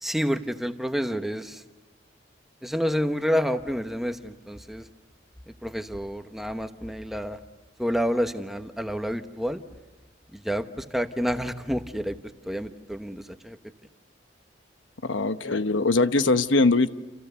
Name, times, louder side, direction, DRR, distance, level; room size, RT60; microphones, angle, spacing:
voice 1, 0.0-1.6 2.6-4.9 5.5-7.4 7.8-9.6 10.3-12.2 12.4-13.6 16.2-16.3, equal, ahead, 7 dB, 1.1 m, -29 dB
voice 2, 15.0-16.9, left 3 dB, 85° left, 11 dB, 1.0 m, -21 dB
29.5 x 29.0 x 6.9 m, 1.1 s
head